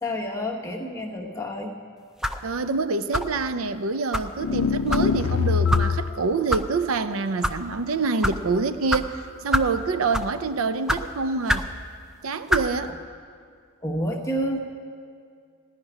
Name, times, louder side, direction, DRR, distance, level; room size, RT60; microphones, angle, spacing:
voice 1, 0.0-1.7 13.8-14.6, equal, 15° left, 1 dB, 0.9 m, -29 dB
sound 1, 2.2-2.5 3.1-3.4 4.1-4.3 4.9-5.1 5.7-5.9 6.5-6.6 7.3-7.6 8.2-8.4 8.9-9.0 9.5-9.7 10.1-10.4 10.9-11.0 11.5-11.7 12.5-12.7, equal, 5° right, 0.4 m, -25 dB
voice 2, 2.4-11.7 12.2-13.0, right 4 dB, 80° right, 11 dB, 0.5 m, -26 dB
sound 2, 4.4-6.2, left 6 dB, 85° left, 0.4 m, -23 dB
16.5 x 5.9 x 9.9 m, 2.2 s
head